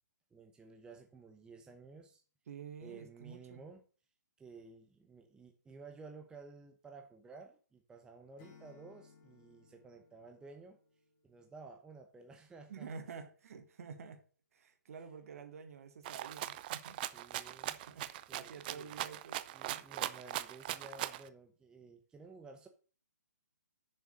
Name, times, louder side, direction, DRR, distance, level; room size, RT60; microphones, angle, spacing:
voice 1, 0.3-2.2 2.8-3.8 4.4-10.8 11.2-12.9 17.1-17.8 18.3-19.0 19.5-22.7, right 4 dB, 10° right, 0.9 m, -54 dB
voice 2, 2.5-3.6 12.7-14.2 14.5-17.0 17.9-19.4 19.6-19.8, right 6 dB, 55° right, 1.9 m, -49 dB
Acoustic guitar / Strum, 8.4-11.5, left 5 dB, 30° left, 3.2 m, -62 dB
Rattle (instrument), 16.0-21.3, right 14 dB, 30° right, 0.5 m, -40 dB
7.1 x 6.8 x 6.6 m
figure-of-eight pair, 140°, 10 cm